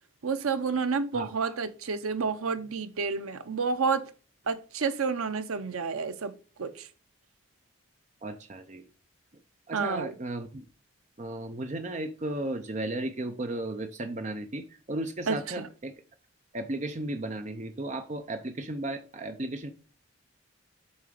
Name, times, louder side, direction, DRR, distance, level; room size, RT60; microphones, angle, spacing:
voice 1, 0.2-4.0 4.5-6.3 6.6-6.9 9.7-10.1 15.3-15.7, right 5 dB, 85° right, 0.7 m, -30 dB
voice 2, 8.2-8.9 9.7-10.6 11.2-15.9 16.5-19.7, right 2 dB, 35° right, 0.5 m, -35 dB
7.0 x 3.9 x 5.1 m
head